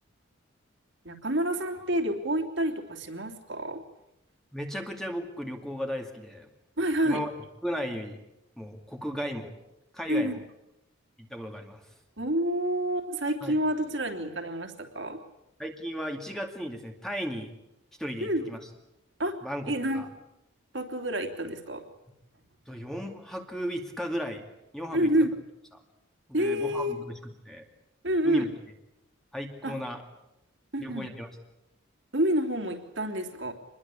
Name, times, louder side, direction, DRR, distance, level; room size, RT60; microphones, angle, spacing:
voice 1, 1.0-3.8 6.8-7.2 10.1-10.4 12.2-15.2 18.2-18.4 19.2-19.3 19.7-20.1 20.7-21.8 24.9-25.3 26.3-27.0 28.0-28.5 29.6-29.8 30.7-31.1 32.1-33.5, right 1 dB, 60° right, 4 dB, 3.2 m, -28 dB
voice 2, 4.5-6.5 7.0-7.3 7.6-8.2 8.6-9.5 9.9-10.4 11.2-11.8 13.4-13.6 15.6-17.5 18.0-18.6 19.4-20.1 22.7-24.4 24.7-25.1 26.3-27.6 28.2-28.5 29.3-30.0 30.8-31.3, equal, ahead, 3 dB, 2.4 m, -35 dB
26.5 x 21.5 x 8.6 m, 0.89 s
head